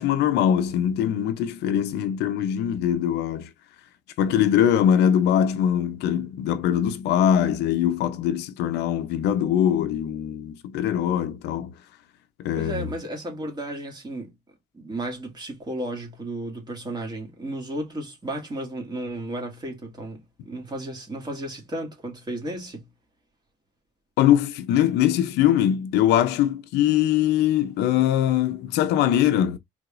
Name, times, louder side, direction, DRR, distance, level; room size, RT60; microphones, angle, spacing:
voice 1, 0.0-3.5 4.2-11.7 12.4-12.9 24.2-29.6, left 10 dB, 85° left, 0.7 m, -22 dB
voice 2, 12.5-14.3 14.7-22.9, right 1 dB, 25° right, 2.2 m, -33 dB
4.8 x 3.6 x 2.5 m
cardioid pair, 110°, 17 cm